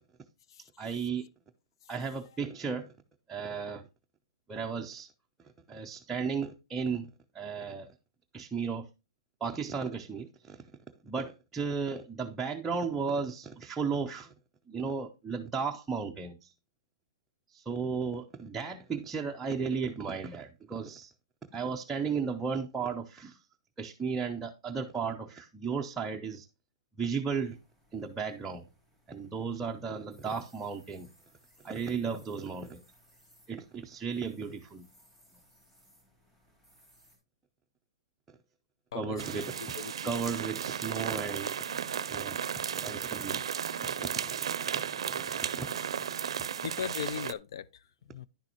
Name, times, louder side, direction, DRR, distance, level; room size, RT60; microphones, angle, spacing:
voice 1, 0.8-1.3 1.9-2.9 3.3-3.9 4.5-5.1 5.7-7.9 8.3-8.9 9.4-10.6 11.0-14.3 14.7-16.5 17.5-21.1 21.5-23.4 23.8-26.5 27.0-27.6 27.9-28.6 29.1-31.1 31.6-32.8 33.5-34.9 38.9-39.5 40.0-41.6 42.1-43.4 43.7-46.4, right 5 dB, 10° right, 0.5 m, -35 dB
sound 1, 27.4-37.2, equal, 10° left, 3.6 m, -64 dB
voice 2, 38.9-39.4 39.8-39.9 46.6-47.7 48.1-48.3, left 8 dB, 55° left, 0.5 m, -38 dB
sound 2, 39.2-47.3, right 8 dB, 80° right, 0.5 m, -34 dB
10.0 x 6.6 x 2.9 m
hypercardioid pair, 165°, 3 cm